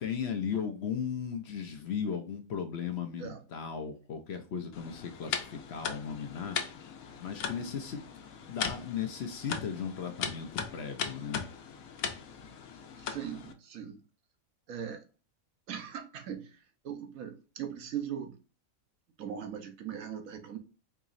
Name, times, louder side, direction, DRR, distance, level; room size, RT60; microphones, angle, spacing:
voice 1, 0.0-6.6 7.2-8.0 8.5-11.4, left 7 dB, 60° left, 0.8 m, -36 dB
sound 1, 4.7-13.5, left 7 dB, 85° left, 1.1 m, -39 dB
voice 2, 13.0-14.0 14.7-15.1 15.7-18.4 19.2-20.6, right 9 dB, 80° right, 1.2 m, -40 dB
4.6 x 3.0 x 2.5 m
omnidirectional pair, 1.4 m